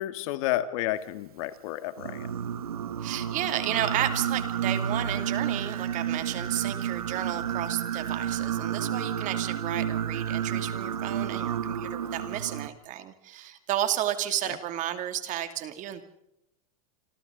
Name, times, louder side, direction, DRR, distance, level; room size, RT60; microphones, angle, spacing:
voice 1, 0.0-2.3, left 14 dB, 65° left, 11 dB, 1.8 m, -31 dB
Singing, 2.0-12.7, right 9 dB, 85° right, 1.2 m, -31 dB
voice 2, 3.0-16.0, right 11 dB, 45° right, 8 dB, 2.7 m, -32 dB
27.0 x 27.0 x 4.0 m, 0.83 s
hypercardioid pair, 105°, 18 cm